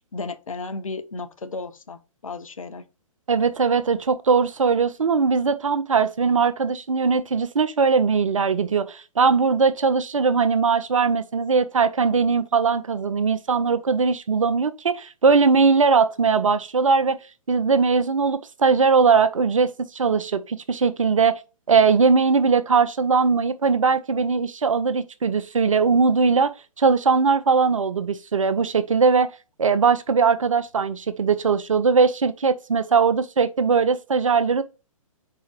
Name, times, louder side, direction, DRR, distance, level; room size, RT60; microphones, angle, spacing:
voice 1, 0.1-2.8, left 3 dB, 70° left, 0.8 m, -34 dB
voice 2, 3.3-17.2 17.5-21.3 21.7-26.5 26.8-29.3 29.6-34.6, right 5 dB, 65° right, 0.6 m, -20 dB
4.7 x 4.1 x 5.1 m
figure-of-eight pair, 125°, 18 cm